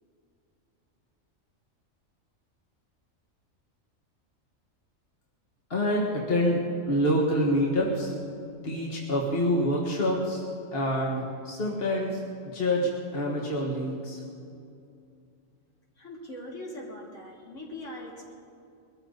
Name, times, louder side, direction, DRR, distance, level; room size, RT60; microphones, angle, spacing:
voice 1, 5.7-8.1 8.6-10.4 10.7-14.2, equal, 45° left, -3 dB, 1.9 m, -27 dB
voice 2, 16.0-18.3, left 1 dB, 70° left, -4 dB, 3.4 m, -41 dB
22.0 x 14.5 x 4.1 m, 2.6 s
omnidirectional pair, 1.4 m